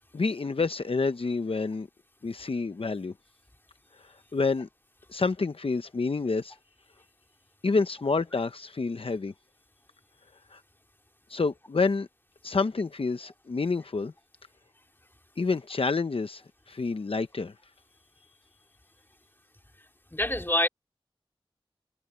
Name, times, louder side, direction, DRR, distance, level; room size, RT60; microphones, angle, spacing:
voice 1, 0.1-1.9 2.2-3.1 4.3-4.7 5.1-6.6 7.6-9.3 10.5-10.6 11.3-12.1 12.4-14.1 15.4-16.4 16.7-17.5, left 4 dB, 75° left, 0.7 m, -28 dB
voice 2, 20.1-20.7, left 1 dB, 20° left, 2.5 m, -25 dB
wide cardioid pair, 50°, 10 cm